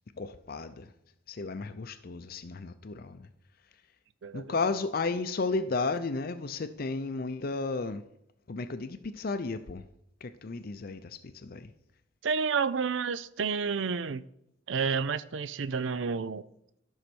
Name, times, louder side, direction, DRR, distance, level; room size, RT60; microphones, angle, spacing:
voice 1, 0.2-0.9 1.3-3.3 4.3-8.0 8.5-9.8 10.2-11.7, left 3 dB, 50° left, 0.5 m, -33 dB
voice 2, 4.2-4.5 12.2-14.2 14.7-16.4, right 5 dB, 75° right, 0.5 m, -30 dB
13.0 x 5.5 x 6.2 m
head